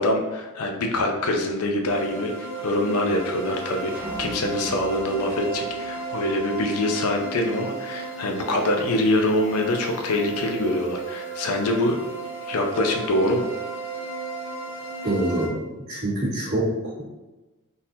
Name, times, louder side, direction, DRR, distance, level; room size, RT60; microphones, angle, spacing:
voice 1, 0.0-3.9 4.2-12.0 12.4-13.5, left 1 dB, 90° left, 3 dB, 0.5 m, -24 dB
sound 1, 1.9-15.5, right 3 dB, 60° left, 0.8 m, -35 dB
sound 2, 3.9-6.4, right 1 dB, 5° right, 0.8 m, -40 dB
voice 2, 15.0-15.6 15.8-17.0, right 1 dB, 45° right, -9 dB, 1.3 m, -25 dB
3.9 x 2.7 x 2.7 m, 1.1 s
head